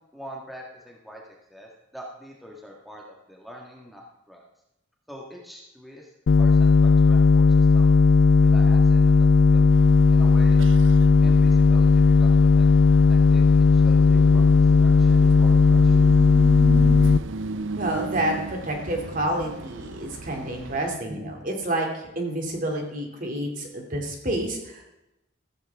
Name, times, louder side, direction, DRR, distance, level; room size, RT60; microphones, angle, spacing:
voice 1, 0.1-3.0 3.3-4.0 4.3-4.4 5.1-6.1 6.4-7.9 8.4-10.6 11.2-12.7 13.0-16.1, equal, ahead, -2 dB, 1.6 m, -44 dB
sound 1, 6.3-17.2, left 4 dB, 65° left, 0.4 m, -16 dB
sound 2, 9.7-21.0, right 4 dB, 70° right, 0.6 m, -37 dB
voice 2, 17.8-24.8, right 1 dB, 40° right, 1 dB, 2.6 m, -29 dB
14.5 x 14.5 x 3.6 m, 0.89 s
head